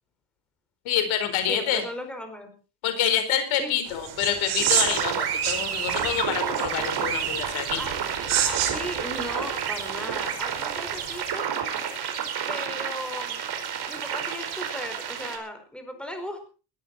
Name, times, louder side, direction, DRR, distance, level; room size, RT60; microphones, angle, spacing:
voice 1, 0.8-1.8 2.8-7.8, left 9 dB, 85° left, 9 dB, 4.6 m, -27 dB
voice 2, 1.5-2.5 3.6-3.7 7.8-7.9 8.2-11.5 12.5-13.5 13.9-16.5, equal, ahead, 6 dB, 4.7 m, -36 dB
sound 1, 3.9-11.3, right 10 dB, 80° right, 5.4 m, -31 dB
sound 2, 4.6-15.4, right 8 dB, 55° right, 4.8 m, -30 dB
20.5 x 14.0 x 4.3 m, 0.36 s
cardioid pair, 135°, 47 cm